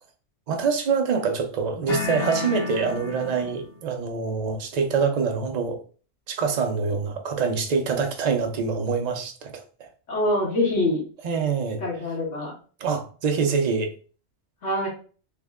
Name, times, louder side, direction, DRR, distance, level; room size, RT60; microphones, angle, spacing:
voice 1, 0.5-5.8 6.3-9.9 11.2-11.8 12.8-13.9, right 5 dB, 50° right, 0.5 m, -25 dB
sound 1, 1.9-3.8, left 4 dB, 60° left, 0.9 m, -31 dB
voice 2, 10.1-11.0 11.8-12.5 14.6-14.9, left 1 dB, 90° left, 1.7 m, -24 dB
3.4 x 2.1 x 3.4 m
omnidirectional pair, 1.2 m